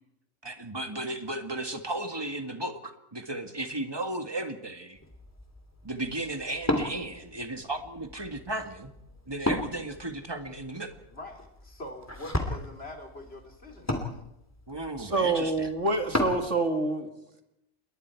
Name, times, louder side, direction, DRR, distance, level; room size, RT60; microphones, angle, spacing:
voice 1, 0.4-5.0 5.8-8.9 9.3-10.9 14.7-15.7, right 2 dB, 20° right, 6 dB, 1.8 m, -35 dB
Wood, 5.0-16.5, left 1 dB, 10° left, 2.8 m, -36 dB
voice 2, 11.1-14.2, left 1 dB, 45° left, 2 dB, 3.6 m, -44 dB
voice 3, 15.0-17.1, right 3 dB, 55° right, 5 dB, 2.5 m, -27 dB
28.0 x 22.0 x 4.7 m, 0.81 s
omnidirectional pair, 1.5 m